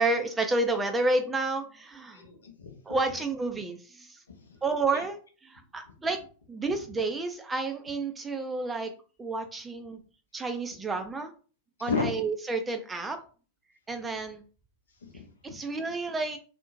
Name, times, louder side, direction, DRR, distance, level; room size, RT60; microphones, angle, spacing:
voice 1, 0.0-2.2 2.9-4.2 4.6-5.2 5.5-6.2 6.5-8.9 9.2-10.0 10.3-11.3 11.8-13.2 13.9-14.4 15.4-16.4, right 3 dB, 15° right, 6 dB, 0.3 m, -30 dB
voice 2, 2.1-3.0 4.4-4.6 4.9-5.1 11.8-12.1 15.0-15.6, left 4 dB, 70° left, 4 dB, 0.6 m, -34 dB
2.6 x 2.0 x 2.5 m, 0.38 s
figure-of-eight pair, 90°, 0 cm